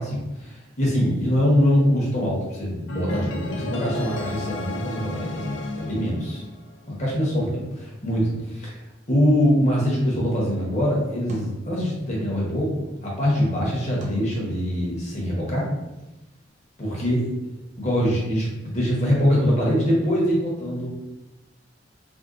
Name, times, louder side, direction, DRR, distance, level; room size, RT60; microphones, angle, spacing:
voice 1, 0.0-6.4 6.9-8.8 9.1-15.7 16.8-17.3 17.8-20.9, equal, 40° left, -4 dB, 0.9 m, -23 dB
sound 1, 2.9-7.0, left 1 dB, 70° left, 0.4 m, -33 dB
sound 2, 11.3-12.5 14.0-15.2, right 1 dB, 40° right, 0.4 m, -40 dB
3.5 x 2.3 x 2.4 m, 1.0 s
head